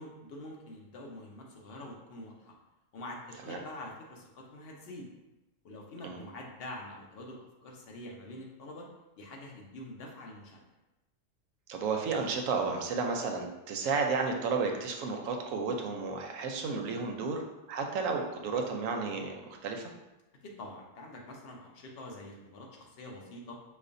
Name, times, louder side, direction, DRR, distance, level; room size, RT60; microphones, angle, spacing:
voice 1, 0.0-2.5 2.9-5.1 5.6-8.9 9.2-10.6 20.4-23.6, left 1 dB, 55° left, 0 dB, 0.8 m, -46 dB
voice 2, 11.7-17.4 17.7-19.9, right 4 dB, 85° right, 3 dB, 1.0 m, -32 dB
5.0 x 2.3 x 2.5 m, 1.0 s
omnidirectional pair, 1.3 m